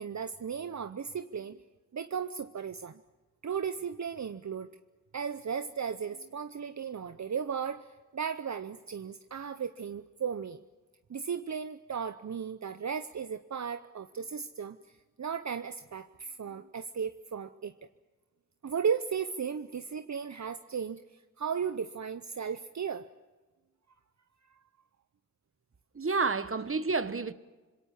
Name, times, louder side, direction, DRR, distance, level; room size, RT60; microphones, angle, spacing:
voice 1, 0.0-1.6 1.9-3.0 3.4-4.7 5.1-10.6 11.1-14.8 15.2-17.7 18.6-23.1, right 7 dB, 60° right, 0.7 m, -35 dB
voice 2, 25.9-27.3, right 4 dB, 45° right, 1.1 m, -29 dB
26.0 x 21.5 x 7.2 m
cardioid pair, 40°, 32 cm